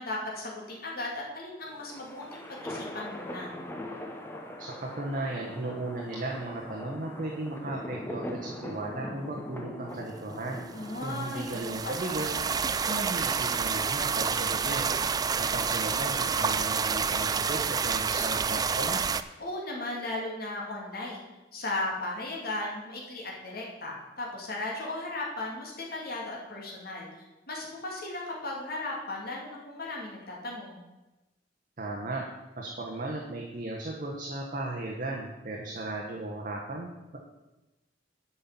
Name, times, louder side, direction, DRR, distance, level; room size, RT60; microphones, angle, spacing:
voice 1, 0.0-3.5 10.7-12.5 19.4-27.1 27.5-30.8, left 2 dB, 55° left, -2 dB, 2.4 m, -36 dB
sound 1, 1.6-12.1, left 1 dB, 15° left, 1.0 m, -41 dB
voice 2, 4.6-10.6 11.0-12.3 12.7-14.9 15.4-19.0 31.8-32.2 32.6-37.2, right 2 dB, 45° right, -1 dB, 1.1 m, -36 dB
sound 2, 10.8-19.2, right 6 dB, 20° right, 0.3 m, -29 dB
8.4 x 5.5 x 7.4 m, 1.1 s
head